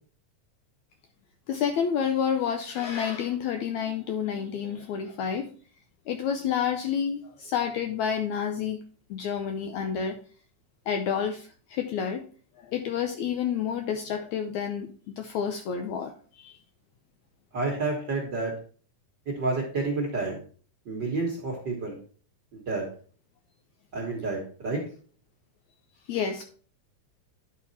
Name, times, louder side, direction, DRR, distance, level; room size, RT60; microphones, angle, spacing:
voice 1, 1.5-5.5 6.1-8.8 9.1-10.2 10.9-12.2 12.6-16.6 26.1-26.4, left 7 dB, 75° left, 5 dB, 1.7 m, -29 dB
voice 2, 17.5-18.5 19.2-20.4 20.8-22.0 22.5-22.9 23.9-24.8, right 3 dB, 50° right, -1 dB, 1.4 m, -29 dB
10.5 x 4.2 x 4.1 m, 0.43 s
omnidirectional pair, 3.9 m